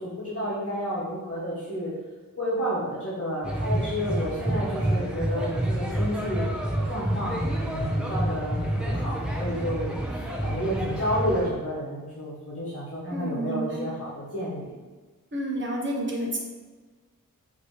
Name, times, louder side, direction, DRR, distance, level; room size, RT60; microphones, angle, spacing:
voice 1, 0.0-1.9 2.4-6.5 6.9-14.7, equal, 40° left, -9 dB, 1.3 m, -31 dB
sound 1, 3.4-11.5, right 1 dB, 5° right, 0.7 m, -28 dB
voice 2, 13.1-13.8 15.3-16.4, right 1 dB, 35° right, -1 dB, 0.9 m, -30 dB
5.2 x 3.0 x 3.1 m, 1.3 s
wide cardioid pair, 85°, 35 cm